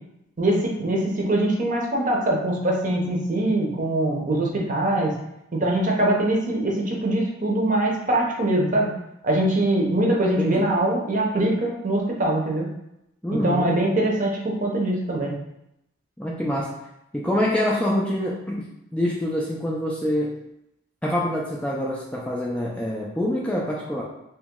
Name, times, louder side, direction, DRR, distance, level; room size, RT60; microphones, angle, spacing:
voice 1, 0.4-5.1 5.5-8.9 9.2-12.7 13.3-15.4, right 1 dB, 40° right, -2 dB, 0.7 m, -23 dB
voice 2, 10.4-10.7 13.2-13.7 16.2-16.7 17.1-18.6 18.9-20.3 21.0-24.0, left 1 dB, 5° left, -5 dB, 0.4 m, -25 dB
3.0 x 2.9 x 3.6 m, 0.84 s
head